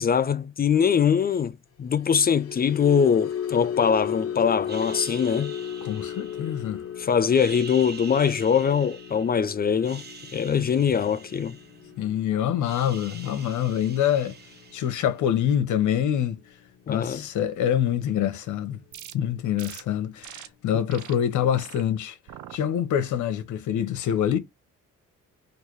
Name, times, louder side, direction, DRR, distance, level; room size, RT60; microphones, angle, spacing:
voice 1, 0.0-5.5 7.0-10.0 10.3-11.6 16.9-17.2, left 7 dB, 30° left, 0.4 m, -22 dB
sound 1, 1.9-18.2 18.6-18.9 19.2-19.5, left 9 dB, 50° left, 0.9 m, -37 dB
sound 2, 4.7-6.8 7.2-9.4 9.7-12.2 12.4-15.3, right 5 dB, 35° right, 1.0 m, -45 dB
voice 2, 5.8-6.8 10.6-10.7 12.0-14.4 14.7-16.4 16.9-18.8 19.1-22.2 22.5-24.4, left 10 dB, 75° left, 0.9 m, -25 dB
sound 3, 18.9-19.1 19.6-19.8 20.2-20.5 20.9-21.1 21.6-21.8 22.3-22.6 23.1-23.4, right 11 dB, 70° right, 0.7 m, -43 dB
3.3 x 2.6 x 4.5 m
cardioid pair, 90°, 30 cm